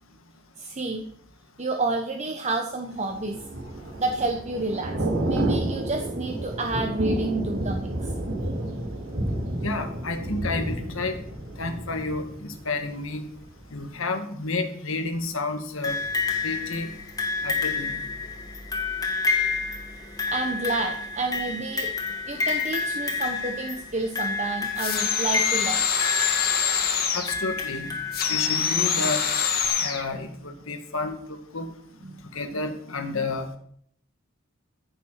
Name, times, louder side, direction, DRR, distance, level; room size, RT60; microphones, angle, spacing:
voice 1, 0.6-1.1 1.6-3.4 4.0-4.9 5.2-8.1 20.3-21.9 22.3-25.8 29.8-30.0 32.0-32.3, right 2 dB, 35° right, 4 dB, 1.1 m, -30 dB
Thunder / Rain, 3.1-13.0 13.4-13.6, right 1 dB, 70° right, 4.4 m, -30 dB
voice 2, 9.6-11.2 11.6-13.3 13.7-16.0 16.4-16.9 17.4-18.1 27.1-28.0 28.3-29.3 29.8-31.7 32.3-33.5, left 3 dB, 70° left, 7 dB, 1.8 m, -30 dB
sound 1, 15.8-28.7 29.6-29.7, left 4 dB, 15° left, 2.0 m, -29 dB
sound 2, 24.8-27.4 28.1-30.0, left 7 dB, 45° left, 2.0 m, -25 dB
14.5 x 7.5 x 5.8 m, 0.64 s
head